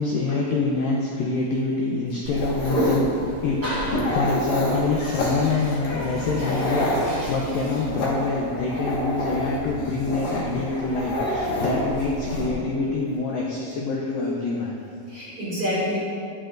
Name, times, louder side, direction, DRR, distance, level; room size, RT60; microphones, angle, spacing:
voice 1, 0.0-3.6 3.9-14.7, left 3 dB, 85° left, -2 dB, 2.0 m, -26 dB
Dog, 2.3-12.5, left 1 dB, 55° left, 2.2 m, -28 dB
voice 2, 2.7-3.1 3.6-3.9 4.7-5.8 6.1-6.7 7.0-7.6 15.1-16.0, equal, 30° right, -10 dB, 2.0 m, -29 dB
12.0 x 10.0 x 2.6 m, 2.4 s
omnidirectional pair, 5.1 m